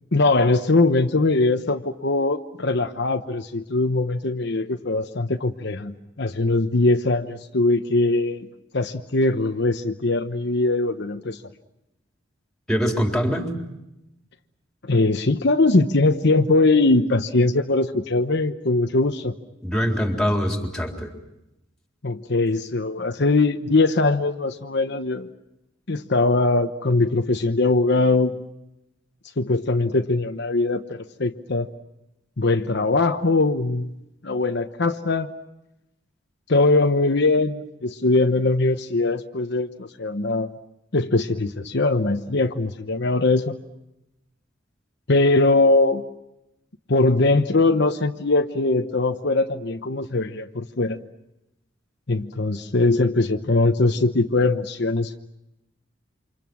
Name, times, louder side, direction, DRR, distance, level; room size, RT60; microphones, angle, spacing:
voice 1, 0.1-8.5 8.7-11.4 14.8-19.3 22.0-25.3 25.9-28.3 29.4-31.7 32.4-33.9 34.2-35.3 36.5-40.5 40.9-43.6 45.1-46.0 46.9-51.0 52.1-55.2, left 2 dB, 60° left, 6 dB, 1.0 m, -21 dB
voice 2, 12.7-13.5 19.6-21.1, equal, 5° left, 2 dB, 3.8 m, -23 dB
29.0 x 26.5 x 6.2 m, 0.89 s
head